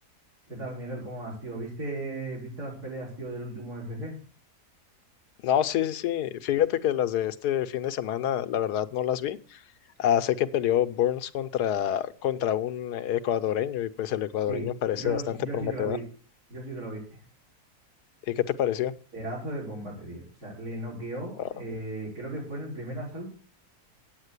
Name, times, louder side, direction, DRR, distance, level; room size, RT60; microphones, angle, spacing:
voice 1, 0.5-4.2 14.5-16.0 16.5-17.2 19.1-23.3, right 2 dB, 90° right, -7 dB, 5.9 m, -36 dB
voice 2, 5.4-9.6 10.0-16.0 18.3-18.9 21.4-21.5, left 10 dB, 90° left, 11 dB, 1.3 m, -27 dB
8.9 x 8.5 x 8.1 m, 0.42 s
omnidirectional pair, 1.6 m